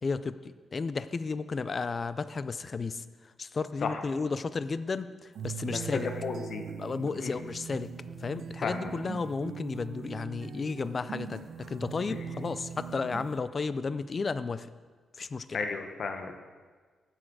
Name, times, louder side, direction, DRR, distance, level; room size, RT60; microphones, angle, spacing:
voice 1, 0.0-3.0 3.4-6.1 6.8-7.9 8.2-14.7 15.2-15.6, left 4 dB, 30° left, 14 dB, 0.4 m, -33 dB
sound 1, 5.4-13.4, right 7 dB, 60° right, 0.6 m, -41 dB
voice 2, 6.2-6.7 7.2-7.4 8.6-8.9 12.1-12.2 15.5-16.3, left 5 dB, 50° left, 5 dB, 0.9 m, -33 dB
15.5 x 6.3 x 4.8 m, 1.5 s
wide cardioid pair, 170°, 0 cm